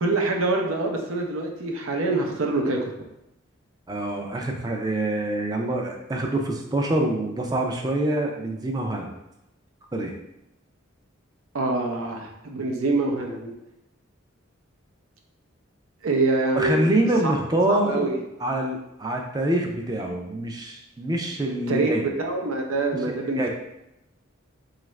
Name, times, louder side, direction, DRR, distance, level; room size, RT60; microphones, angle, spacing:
voice 1, 0.0-2.9 11.5-13.5 16.0-16.9 17.2-17.3 17.7-18.2 21.7-23.5, right 2 dB, 85° right, 2 dB, 0.6 m, -25 dB
voice 2, 3.9-9.1 9.9-10.1 16.6-18.1 18.4-22.0 23.1-23.5, right 1 dB, 20° right, 1 dB, 0.4 m, -25 dB
4.0 x 2.4 x 3.1 m, 0.87 s
head